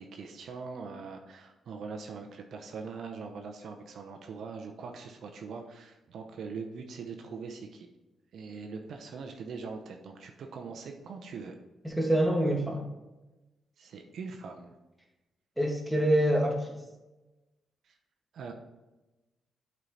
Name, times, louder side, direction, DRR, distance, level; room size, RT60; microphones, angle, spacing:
voice 1, 0.0-7.9 8.3-11.6 13.8-14.7 17.8-17.9 18.3-18.5, right 5 dB, 70° right, 3 dB, 0.7 m, -42 dB
voice 2, 11.8-12.9 15.6-16.7, right 1 dB, ahead, -1 dB, 1.7 m, -26 dB
8.1 x 4.4 x 4.0 m, 1.1 s
cardioid pair, 75°, 0 cm